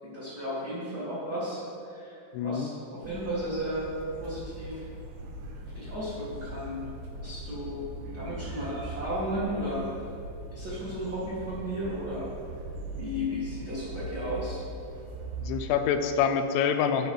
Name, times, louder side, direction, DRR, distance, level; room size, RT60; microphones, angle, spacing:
voice 1, 0.0-3.9 4.2-4.8 5.6-6.8 7.2-7.8 8.1-9.8 10.5-12.3 12.9-14.6, equal, 40° right, -10 dB, 1.3 m, -34 dB
voice 2, 2.3-2.7 15.4-17.1, left 7 dB, 85° left, 8 dB, 2.6 m, -26 dB
sound 1, 3.0-15.7, right 2 dB, 90° right, 2.9 m, -40 dB
11.0 x 4.2 x 5.5 m, 2.6 s
omnidirectional pair, 4.9 m